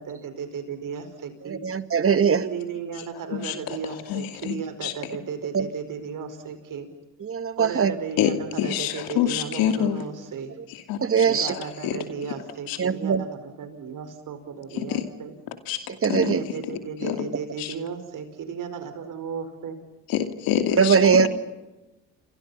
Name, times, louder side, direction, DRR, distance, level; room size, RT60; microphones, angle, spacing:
voice 1, 0.0-1.6 2.4-6.9 7.6-10.6 11.2-15.3 16.1-19.8 21.0-21.3, right 6 dB, 60° right, 9 dB, 5.1 m, -35 dB
voice 2, 1.5-2.4 5.5-5.6 7.2-7.9 11.0-11.5 12.8-13.2 16.0-16.4 20.8-21.3, right 6 dB, 40° right, 12 dB, 2.1 m, -21 dB
voice 3, 3.3-4.9 8.2-10.0 10.7-12.0 12.7-12.8 14.7-15.0 15.7-17.3 17.6-17.7 20.1-21.3, left 10 dB, 80° left, 8 dB, 2.7 m, -28 dB
29.5 x 26.5 x 5.7 m, 1.0 s
supercardioid pair, 65°, 35 cm